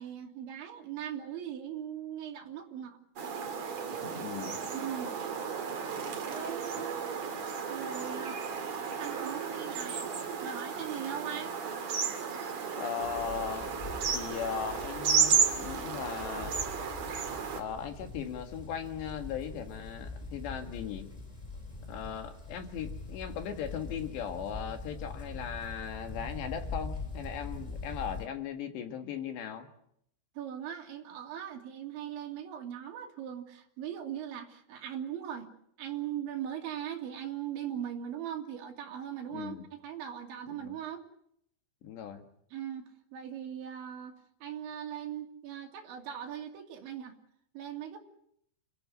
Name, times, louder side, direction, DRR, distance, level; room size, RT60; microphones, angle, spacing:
voice 1, 0.0-3.0 4.7-5.1 6.3-7.0 7.7-8.5 9.0-10.1 10.4-11.6 30.4-35.5 35.8-41.1 42.5-42.9 43.1-47.2 47.6-48.0, right 10 dB, 75° right, 3 dB, 5.0 m, -39 dB
sound 1, 3.2-17.6, right 6 dB, 45° right, 3.0 m, -33 dB
voice 2, 4.2-4.6 12.8-13.8 14.1-16.6 17.5-21.1 21.9-29.7 39.3-39.7 40.5-40.7 41.8-42.3, left 8 dB, 70° left, 6 dB, 3.8 m, -38 dB
sound 2, 13.0-28.3, left 3 dB, 15° left, 1.4 m, -43 dB
29.5 x 15.0 x 9.6 m, 0.73 s
omnidirectional pair, 5.5 m